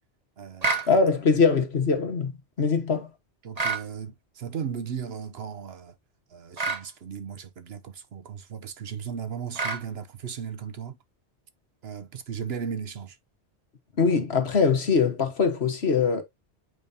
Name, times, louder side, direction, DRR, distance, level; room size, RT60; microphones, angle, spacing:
voice 1, 0.4-0.9 3.4-5.9 6.3-11.0 11.8-13.2, right 7 dB, 65° right, 1.0 m, -36 dB
sound 1, 0.6-0.9 3.5-3.9 6.6-6.8 9.5-9.8, right 4 dB, 35° right, 1.1 m, -27 dB
voice 2, 0.9-2.3 2.6-3.1 14.0-16.2, left 5 dB, 65° left, 1.6 m, -22 dB
7.7 x 5.2 x 2.7 m
omnidirectional pair, 1.2 m